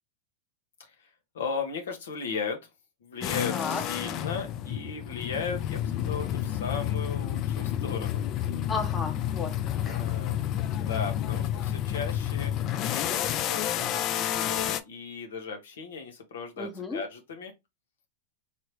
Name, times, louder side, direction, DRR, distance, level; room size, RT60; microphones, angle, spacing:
voice 1, 1.3-2.6 3.0-8.2 9.8-10.4 10.7-12.5 13.1-17.5, left 5 dB, 80° left, 1.0 m, -36 dB
sound 1, 3.2-14.8, left 11 dB, 40° left, 0.4 m, -30 dB
voice 2, 3.5-3.8 8.7-10.1 16.6-17.0, left 4 dB, 15° left, 0.8 m, -34 dB
3.4 x 2.7 x 3.0 m
hypercardioid pair, 120°, 0 cm